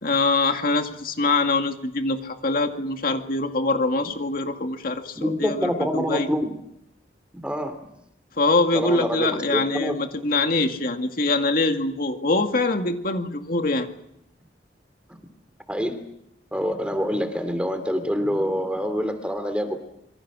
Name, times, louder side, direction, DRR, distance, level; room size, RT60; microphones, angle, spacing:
voice 1, 0.0-6.3 8.4-13.9, left 3 dB, 50° left, 5 dB, 2.1 m, -24 dB
voice 2, 5.1-6.5 7.4-7.8 8.7-10.0 15.7-16.0 16.5-19.8, equal, 5° right, 9 dB, 2.8 m, -26 dB
26.5 x 24.5 x 6.3 m, 0.77 s
head